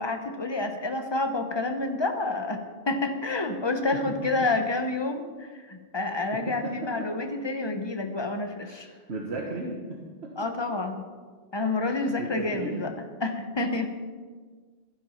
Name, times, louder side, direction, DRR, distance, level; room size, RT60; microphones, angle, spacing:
voice 1, 0.0-8.9 10.4-11.0 11.5-12.9 13.2-14.0, left 2 dB, 25° left, 6 dB, 1.0 m, -29 dB
voice 2, 6.3-7.1 8.6-10.5 11.6-12.9, right 2 dB, 85° right, -1 dB, 1.7 m, -36 dB
12.0 x 10.0 x 5.7 m, 1.5 s
omnidirectional pair, 1.1 m